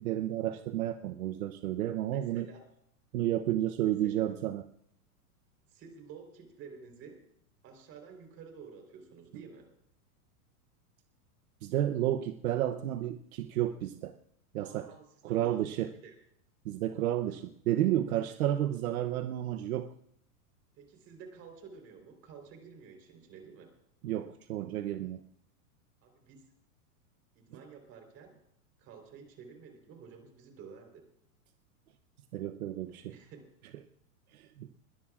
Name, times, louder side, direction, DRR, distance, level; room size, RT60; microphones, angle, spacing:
voice 1, 0.0-2.5 3.1-4.6 11.6-14.2 14.5-14.9 15.3-15.9 16.6-19.9 24.0-25.2 32.3-33.1 34.3-34.7, right 12 dB, 65° right, 9 dB, 0.9 m, -31 dB
voice 2, 2.1-2.6 3.8-4.1 5.7-7.2 7.6-9.7 14.6-16.1 17.2-17.4 20.8-23.7 26.0-26.5 27.3-28.3 28.8-31.0 32.9-33.4, right 6 dB, 30° right, 4 dB, 3.8 m, -51 dB
21.5 x 18.5 x 2.4 m, 0.71 s
supercardioid pair, 155°, 45 cm